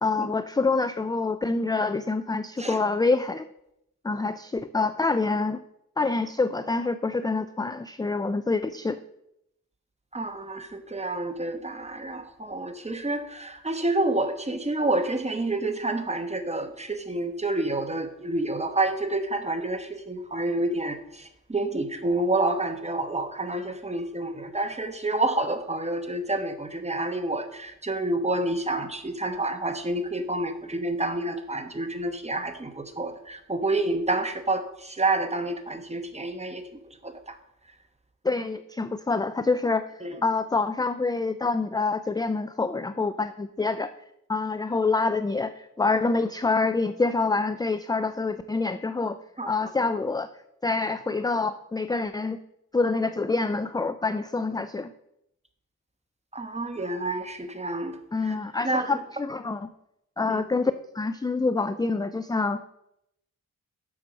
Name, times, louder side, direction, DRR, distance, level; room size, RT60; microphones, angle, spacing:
voice 1, 0.0-3.4 4.0-5.6 6.0-9.0 38.2-39.9 40.2-43.9 44.3-49.2 49.4-50.3 50.6-52.4 52.7-54.9 58.1-59.7 60.2-62.6, left 3 dB, 10° left, 11 dB, 0.4 m, -26 dB
voice 2, 10.1-36.6 37.0-37.4 40.0-40.1 49.4-49.5 56.3-58.0 58.2-58.3 58.6-58.9 60.3-60.4, right 2 dB, 20° right, 7 dB, 1.1 m, -28 dB
7.4 x 6.4 x 6.2 m, 0.81 s
cardioid pair, 70°, 33 cm